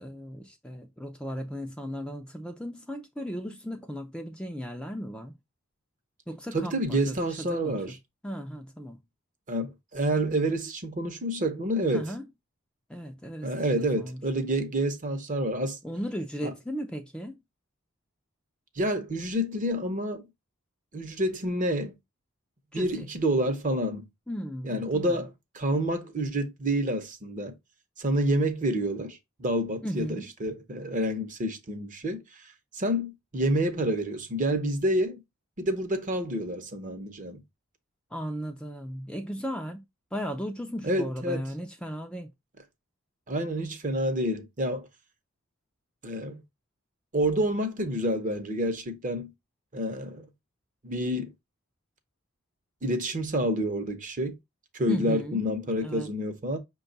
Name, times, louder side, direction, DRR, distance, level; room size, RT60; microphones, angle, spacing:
voice 1, 0.0-5.3 6.3-7.2 7.5-7.7 8.2-9.0 11.9-12.2 12.9-13.5 13.8-14.2 15.8-17.3 22.7-23.1 24.3-25.2 29.8-30.2 38.1-39.8 40.1-42.3 54.9-55.4 55.8-56.1, equal, 5° left, 0.4 m, -36 dB
voice 2, 6.5-8.0 9.5-12.1 13.4-15.8 16.4-16.5 18.8-20.2 20.9-21.9 22.7-24.1 24.6-27.5 28.0-35.2 35.6-37.4 40.8-41.4 43.3-44.9 46.0-46.4 47.1-49.3 49.7-50.3 50.8-51.3 52.8-54.4 54.7-56.6, right 1 dB, 40° right, 0.7 m, -28 dB
5.6 x 2.3 x 3.8 m
head